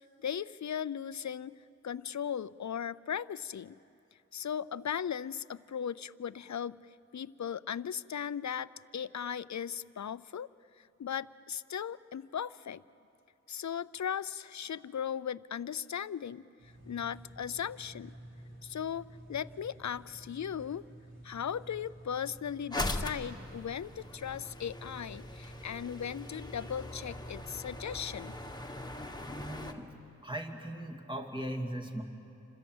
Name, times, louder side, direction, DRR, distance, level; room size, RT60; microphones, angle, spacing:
voice 1, 0.2-1.6 1.8-3.8 4.3-6.8 7.1-10.5 11.0-12.8 13.5-16.4 16.9-18.1 18.6-20.8 21.2-28.3, left 8 dB, 70° left, 18 dB, 0.5 m, -37 dB
sound 1, 16.6-28.5, right 1 dB, 40° right, 5.4 m, -51 dB
sound 2, 22.7-29.7, left 2 dB, 15° left, 1.7 m, -41 dB
voice 2, 29.3-29.9 30.2-32.0, right 1 dB, 15° right, 4 dB, 2.5 m, -38 dB
28.5 x 26.5 x 7.9 m, 2.8 s
wide cardioid pair, 65°, 30 cm